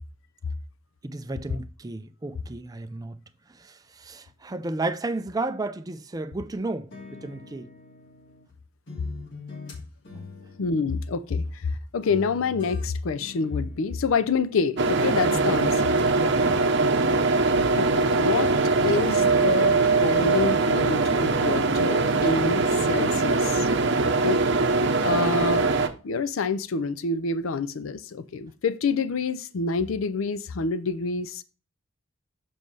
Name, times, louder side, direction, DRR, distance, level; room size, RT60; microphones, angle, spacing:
voice 1, 1.0-3.1 3.6-7.7 16.2-17.1, right 2 dB, 20° right, 0.4 m, -33 dB
sound 1, 6.9-8.5 8.9-11.7 12.0-14.9 15.2-16.1 16.3-18.0 18.3-21.2 21.5-22.4 22.7-22.8, left 4 dB, 60° left, 2.3 m, -44 dB
voice 2, 10.6-16.0 17.7-18.5 18.8-23.7 24.0-24.7 25.0-25.7 26.0-31.4, left 4 dB, 85° left, 0.5 m, -27 dB
sound 2, 14.8-25.9, right 3 dB, 60° right, 0.7 m, -22 dB
7.3 x 5.3 x 3.2 m
head